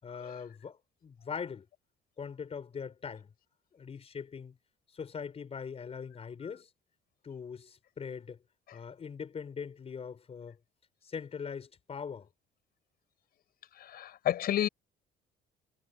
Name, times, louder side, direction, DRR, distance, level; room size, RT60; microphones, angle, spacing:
voice 1, 0.0-1.7 2.2-3.3 3.7-4.6 4.9-6.7 7.2-8.4 8.7-10.6 11.0-12.3, left 6 dB, 35° left, 5.3 m, -41 dB
voice 2, 13.7-14.7, left 12 dB, 65° left, 6.1 m, -30 dB
cardioid pair, 110°, 17 cm